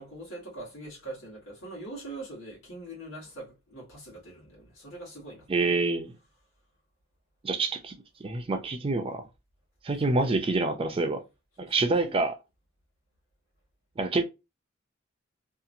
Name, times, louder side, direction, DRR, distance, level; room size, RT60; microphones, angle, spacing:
voice 1, 0.0-5.8 9.9-10.4 11.6-12.2, right 2 dB, 90° left, 1.3 m, -43 dB
voice 2, 5.5-6.1 7.4-7.9 8.2-9.2 9.8-11.2 11.6-12.3 14.0-14.2, right 3 dB, 25° right, 0.4 m, -27 dB
2.8 x 2.4 x 2.5 m
head